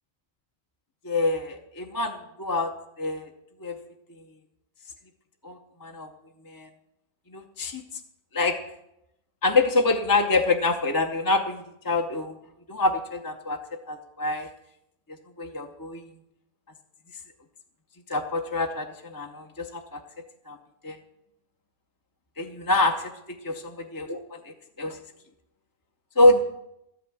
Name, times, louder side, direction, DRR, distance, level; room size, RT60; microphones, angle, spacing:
voice 1, 1.0-3.2 3.6-3.8 5.4-6.1 6.5-6.7 7.3-7.8 8.3-8.6 9.4-12.4 12.7-14.5 15.4-16.0 18.1-20.6 20.8-21.0 22.4-23.1 23.4-25.0 26.2-26.4, left 2 dB, 25° left, 3 dB, 0.5 m, -26 dB
13.0 x 6.0 x 8.4 m, 0.83 s
omnidirectional pair, 1.4 m